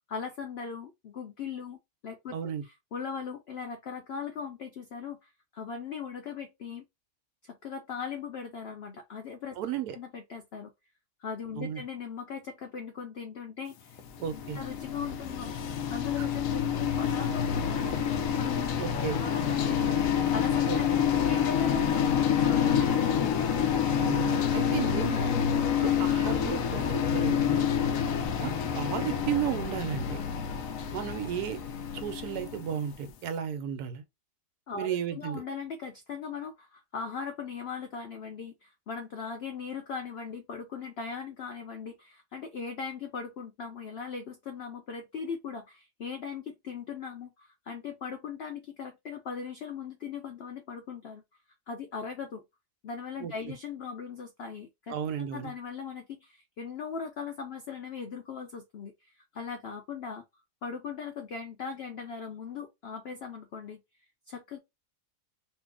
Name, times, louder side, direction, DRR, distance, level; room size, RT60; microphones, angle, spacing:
voice 1, 0.1-2.4 2.6-6.8 7.4-9.6 9.9-10.7 11.2-14.0 14.3-15.5 15.9-19.9 20.3-23.3 34.7-51.2 51.7-52.4 52.8-60.2 60.6-63.8 64.3-64.6, left 6 dB, 85° left, 0.5 m, -39 dB
voice 2, 2.3-2.6 9.6-10.0 11.6-11.8 14.2-14.6 16.2-16.3 18.8-19.2 20.7-20.8 24.0-25.3 25.8-27.7 28.4-30.2 30.9-31.6 31.9-34.0 34.8-35.4 53.2-53.5 54.9-55.5, right 9 dB, 75° right, 1.1 m, -34 dB
sound 1, 14.0-33.0, left 8 dB, 70° left, 0.8 m, -28 dB
2.7 x 2.6 x 3.5 m
omnidirectional pair, 1.7 m